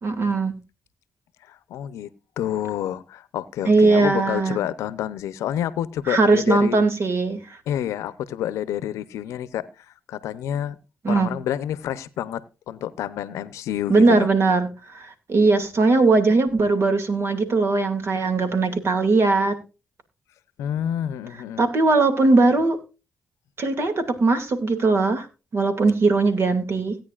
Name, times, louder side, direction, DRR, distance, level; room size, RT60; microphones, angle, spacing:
voice 1, 0.0-0.6 3.6-4.6 6.1-7.4 11.0-11.4 13.9-14.7 14.9-19.6 21.6-22.8 23.6-25.3 25.5-27.0, right 3 dB, 55° right, 2.3 m, -19 dB
voice 2, 1.4-2.1 2.4-6.8 7.7-10.8 11.1-14.3 20.6-21.6, left 11 dB, 90° left, 0.7 m, -29 dB
17.5 x 9.2 x 2.4 m
supercardioid pair, 60°, 5 cm